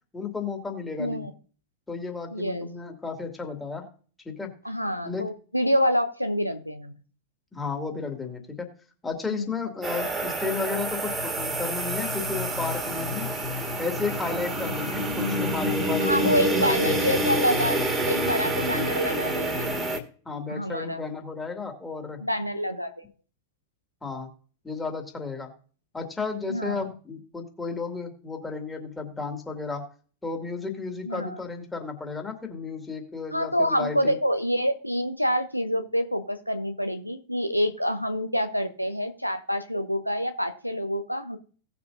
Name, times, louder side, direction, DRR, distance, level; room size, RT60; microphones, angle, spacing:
voice 1, 0.1-1.3 1.9-3.9 4.2-4.5 5.0-5.3 7.5-8.7 9.0-13.3 13.8-17.0 20.3-22.2 24.0-24.3 24.6-25.5 25.9-29.8 30.2-34.2, left 4 dB, 10° left, 2 dB, 2.4 m, -33 dB
voice 2, 1.0-1.3 2.3-2.7 4.6-6.9 9.3-9.5 16.0-17.8 18.1-19.7 20.5-21.0 22.2-23.0 26.5-26.9 31.1-31.4 33.3-41.4, equal, 90° left, 8 dB, 0.8 m, -27 dB
sound 1, 9.8-20.0, right 1 dB, 15° right, 1.8 m, -27 dB
18.0 x 7.0 x 2.7 m, 0.42 s
figure-of-eight pair, 90°, 0 cm